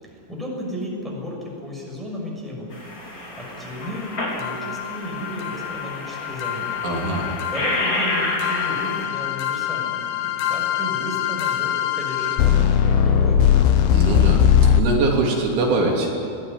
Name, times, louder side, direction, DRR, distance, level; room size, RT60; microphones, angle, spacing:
voice 1, 0.0-2.8 3.0-6.9 7.5-13.7, left 1 dB, ahead, -3 dB, 6.3 m, -33 dB
sound 1, 2.7-9.1, left 1 dB, 25° left, 4.6 m, -30 dB
sound 2, 4.4-14.8, left 9 dB, 75° left, 2.4 m, -21 dB
voice 2, 6.8-7.3 13.9-16.1, right 3 dB, 80° right, -1 dB, 5.6 m, -22 dB
21.5 x 18.0 x 9.9 m, 2.8 s
omnidirectional pair, 5.3 m